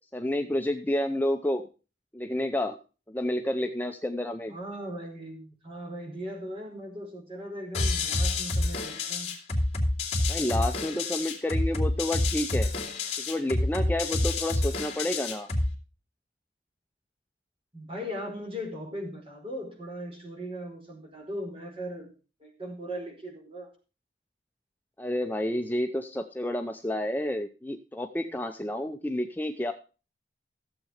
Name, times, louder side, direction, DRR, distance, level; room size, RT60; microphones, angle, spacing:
voice 1, 0.1-1.6 2.1-2.8 3.1-4.6 10.3-12.7 13.3-15.5 25.0-29.7, left 1 dB, 10° left, 5 dB, 0.6 m, -30 dB
voice 2, 4.5-9.3 17.7-22.1 22.4-23.7, equal, 30° right, 1 dB, 4.6 m, -38 dB
sound 1, 7.7-15.7, left 2 dB, 35° left, 2.8 m, -28 dB
15.0 x 7.7 x 4.9 m, 0.34 s
head